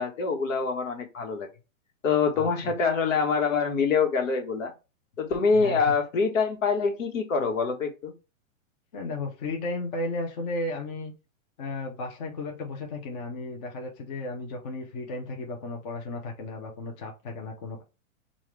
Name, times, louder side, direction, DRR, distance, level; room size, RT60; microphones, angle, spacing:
voice 1, 0.0-1.5 2.0-4.7 5.2-8.1, left 5 dB, 70° left, 4 dB, 1.4 m, -25 dB
voice 2, 2.3-2.7 5.5-6.0 8.9-11.1 11.6-17.8, left 2 dB, 30° left, 2 dB, 0.8 m, -34 dB
5.5 x 2.5 x 3.2 m, 0.29 s
hypercardioid pair, 160°, 40 cm